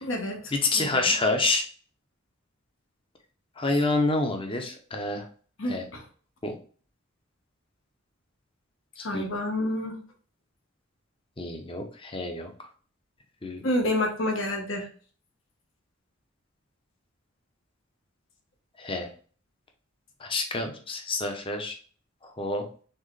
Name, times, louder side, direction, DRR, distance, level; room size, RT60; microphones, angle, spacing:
voice 1, 0.0-1.1 5.6-6.0 9.0-10.0 13.6-14.9, left 1 dB, 70° left, 3 dB, 1.1 m, -29 dB
voice 2, 0.5-1.7 3.6-5.2 5.6-5.8 6.4-6.5 9.0-9.3 11.4-12.5 13.4-13.6 18.8-19.1 20.2-21.7 22.4-22.6, left 2 dB, 25° left, 4 dB, 0.7 m, -27 dB
4.4 x 3.6 x 3.1 m, 0.42 s
head